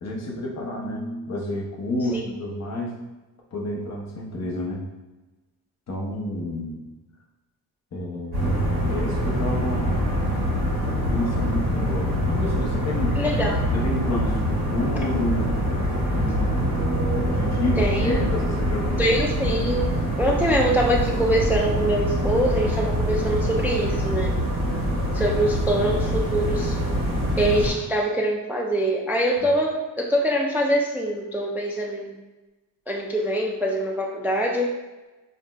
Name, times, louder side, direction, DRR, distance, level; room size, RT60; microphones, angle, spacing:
voice 1, 0.0-3.0 3.5-4.8 5.9-6.8 7.9-10.2 11.1-13.2 13.7-16.8 17.1-19.1 24.7-25.0 29.4-29.5, left 1 dB, 45° left, -1 dB, 0.7 m, -30 dB
sound 1, 8.3-27.7, equal, 80° right, 1.4 m, -24 dB
voice 2, 13.1-13.6 17.8-18.2 19.0-24.3 25.1-26.8 27.4-32.2 32.9-34.7, right 1 dB, 5° right, -2 dB, 0.3 m, -24 dB
3.6 x 2.5 x 2.2 m, 1.1 s
cardioid pair, 70°, 37 cm